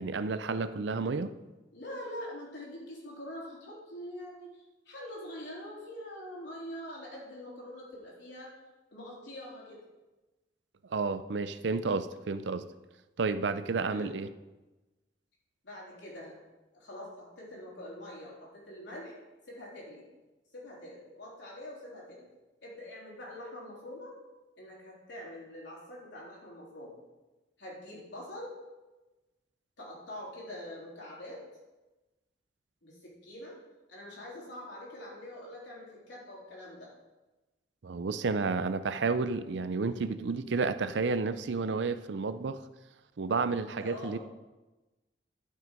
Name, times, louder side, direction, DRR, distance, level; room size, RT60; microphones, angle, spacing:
voice 1, 0.0-1.3 10.9-12.6 13.2-14.3 37.8-42.6 43.2-44.2, right 4 dB, 70° right, 12 dB, 0.5 m, -31 dB
voice 2, 1.7-8.5 8.9-9.8 13.8-14.1 15.6-16.4 16.7-19.1 19.5-20.0 20.5-22.3 22.6-24.1 24.6-26.9 27.6-28.6 29.8-31.4 32.8-33.6 33.9-36.9 43.8-44.2, left 1 dB, 70° left, -4 dB, 3.8 m, -44 dB
12.0 x 6.2 x 5.2 m, 1.1 s
head